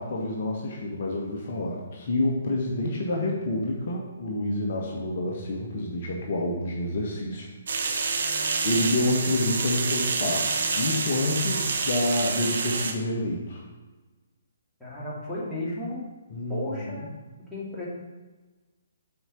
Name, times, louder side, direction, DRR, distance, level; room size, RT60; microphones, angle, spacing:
voice 1, 0.0-7.5 8.3-13.6 16.3-17.1, left 1 dB, 45° left, -2 dB, 1.4 m, -28 dB
sound 1, 7.7-12.9, right 4 dB, 55° right, 1.0 m, -27 dB
voice 2, 14.8-16.0 16.5-17.1 17.5-17.9, left 1 dB, 5° left, -9 dB, 2.4 m, -33 dB
7.8 x 4.9 x 6.7 m, 1.2 s
figure-of-eight pair, 130°, 0 cm